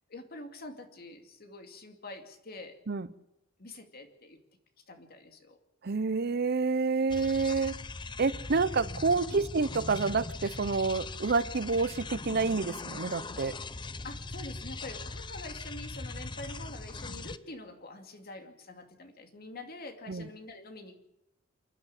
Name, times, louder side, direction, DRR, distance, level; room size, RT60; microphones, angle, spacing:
voice 1, 0.1-2.8 3.6-4.4 4.9-5.6 9.3-9.4 14.0-21.0, left 2 dB, 50° left, 6 dB, 2.5 m, -46 dB
voice 2, 5.8-7.7 8.2-13.5 20.1-20.2, right 4 dB, 50° right, 17 dB, 0.7 m, -28 dB
sound 1, 7.1-17.4, left 3 dB, 25° left, 0.7 m, -40 dB
28.0 x 11.0 x 8.8 m, 0.89 s
head